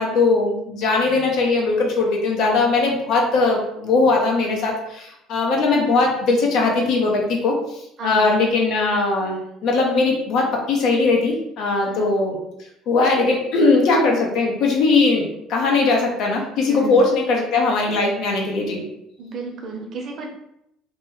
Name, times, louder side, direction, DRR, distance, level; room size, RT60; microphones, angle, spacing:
voice 1, 0.0-12.4 12.9-18.8, left 3 dB, 65° left, -1 dB, 0.8 m, -20 dB
voice 2, 8.0-8.3 11.8-12.1 16.6-17.0 19.2-20.3, right 3 dB, 50° right, 2 dB, 0.7 m, -32 dB
3.0 x 2.1 x 3.5 m, 0.79 s
cardioid pair, 105°, 0 cm